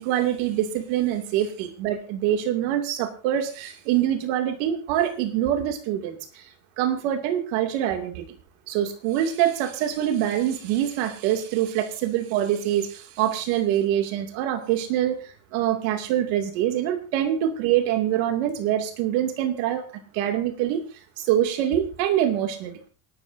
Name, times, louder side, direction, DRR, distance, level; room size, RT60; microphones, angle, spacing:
voice 1, 0.0-6.4 6.8-8.2 8.7-19.8 20.1-20.8 21.2-22.8, right 11 dB, 65° right, 5 dB, 2.5 m, -25 dB
27.5 x 12.0 x 2.7 m, 0.37 s
cardioid pair, 175°, 43 cm